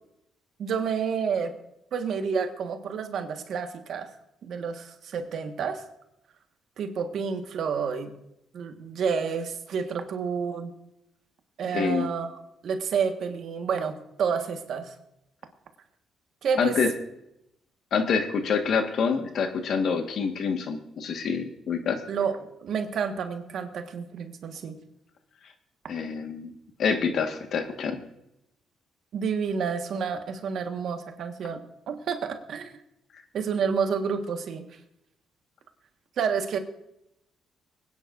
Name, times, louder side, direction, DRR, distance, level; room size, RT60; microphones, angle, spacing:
voice 1, 0.6-1.5 1.9-4.1 4.4-5.8 6.8-8.1 8.5-10.7 11.6-12.4 12.6-14.9 16.4-16.8 22.1-24.8 29.1-31.6 31.9-32.8 33.3-34.6 36.2-36.6, right 6 dB, 65° right, 6 dB, 1.4 m, -29 dB
voice 2, 11.7-12.1 16.6-16.9 17.9-22.0 25.9-26.5 26.8-28.0, left 5 dB, 65° left, 6 dB, 1.5 m, -26 dB
24.5 x 9.8 x 2.6 m, 0.82 s
cardioid pair, 90°, 0 cm